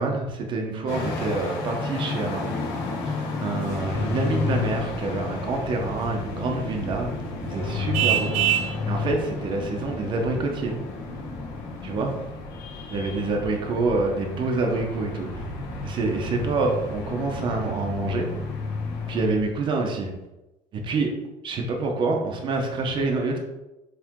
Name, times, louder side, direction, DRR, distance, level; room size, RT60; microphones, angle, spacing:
voice 1, 0.0-2.5 3.1-7.1 7.4-8.3 8.8-10.8 11.8-12.1 12.9-15.4 15.8-18.3 19.1-20.1 20.7-21.1 21.4-23.4, right 3 dB, 40° right, 1 dB, 0.9 m, -27 dB
sound 1, 0.9-19.3, left 4 dB, 75° left, 1.6 m, -32 dB
sound 2, 3.6-19.5, left 1 dB, 45° left, 1.3 m, -40 dB
Vehicle horn car horn honking, 7.9-8.8, right 12 dB, 85° right, 0.5 m, -22 dB
7.5 x 3.3 x 3.7 m, 0.99 s
cardioid pair, 155°, 13 cm